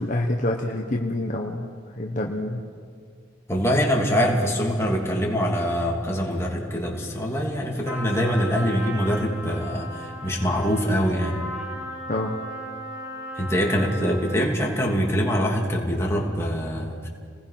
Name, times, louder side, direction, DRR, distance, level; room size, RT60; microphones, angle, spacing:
voice 1, 0.0-1.7 2.0-2.6 12.1-12.4, left 1 dB, 40° left, 1 dB, 1.3 m, -27 dB
voice 2, 3.5-11.4 13.4-17.1, equal, 15° left, -2 dB, 2.9 m, -24 dB
Trumpet, 7.8-14.5, equal, 15° right, 5.2 m, -36 dB
30.0 x 20.0 x 5.9 m, 2.1 s
head